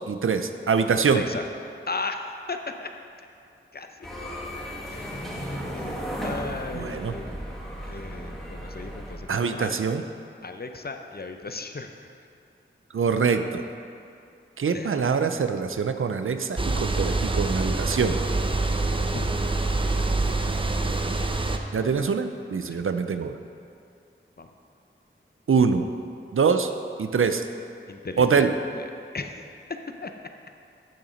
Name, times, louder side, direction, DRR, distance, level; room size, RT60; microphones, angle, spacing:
voice 1, 0.1-1.2 6.7-7.1 9.3-10.0 12.9-13.6 14.6-18.2 21.7-23.4 25.5-25.9 26.3-26.7 27.0-27.4 28.2-28.5, right 5 dB, 80° right, 8 dB, 0.5 m, -24 dB
voice 2, 1.1-1.4 1.9-2.9 3.7-3.9 4.9-7.4 7.8-9.7 10.4-12.1 14.7-15.3 19.1-19.3 19.9-20.7 22.7-22.8 24.4-24.5 27.9-28.5 28.7-28.9 29.1-29.4 30.0-30.1, left 3 dB, 50° left, 6 dB, 0.7 m, -36 dB
sound 1, 4.0-9.2, equal, ahead, 1.7 m, -35 dB
sound 2, 16.6-21.6, right 2 dB, 25° right, 0.6 m, -25 dB
8.8 x 7.0 x 5.1 m, 2.5 s
wide cardioid pair, 55°, 21 cm